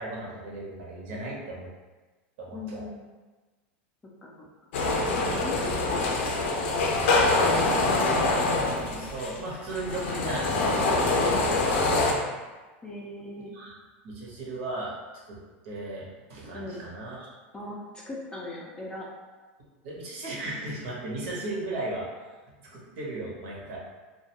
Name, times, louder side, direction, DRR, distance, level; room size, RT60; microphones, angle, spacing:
voice 1, 0.0-1.7 2.4-2.8 8.5-12.3 13.3-13.7 14.0-14.9 15.2-17.3 19.8-22.1 22.6-23.8, right 2 dB, 65° right, -4 dB, 0.9 m, -36 dB
voice 2, 2.5-3.0 4.2-4.5 5.2-7.5 12.8-13.5 16.5-16.8 17.5-19.1, left 2 dB, 15° left, -3 dB, 0.4 m, -39 dB
sound 1, 4.7-12.1, left 2 dB, 75° left, 0.5 m, -25 dB
2.4 x 2.2 x 2.9 m, 1.3 s
supercardioid pair, 135°, 6 cm